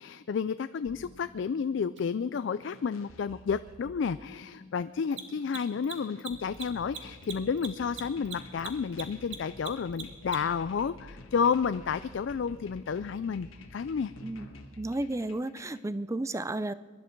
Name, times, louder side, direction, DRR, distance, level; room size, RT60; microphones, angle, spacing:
voice 1, 0.0-14.1, left 6 dB, 60° left, 13 dB, 0.3 m, -31 dB
sound 1, 0.9-15.8, left 1 dB, 85° left, 1.5 m, -50 dB
Mechanisms, 2.0-2.1 5.0-10.6, right 7 dB, 60° right, 1.7 m, -41 dB
voice 2, 14.8-16.7, right 2 dB, 15° right, 15 dB, 0.4 m, -32 dB
23.5 x 11.5 x 4.6 m, 1.6 s
head